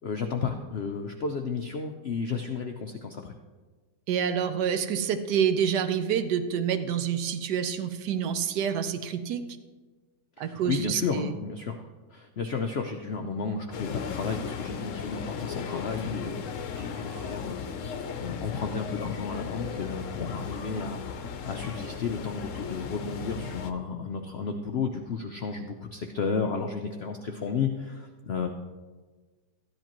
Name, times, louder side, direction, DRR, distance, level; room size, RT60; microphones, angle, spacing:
voice 1, 0.0-3.3 10.4-28.5, left 5 dB, 80° left, 4 dB, 0.5 m, -33 dB
voice 2, 4.1-9.4 10.4-11.4, right 8 dB, 75° right, 9 dB, 1.2 m, -27 dB
sound 1, 13.7-23.7, left 6 dB, 60° left, 0.9 m, -36 dB
14.5 x 10.5 x 3.0 m, 1.4 s
omnidirectional pair, 1.8 m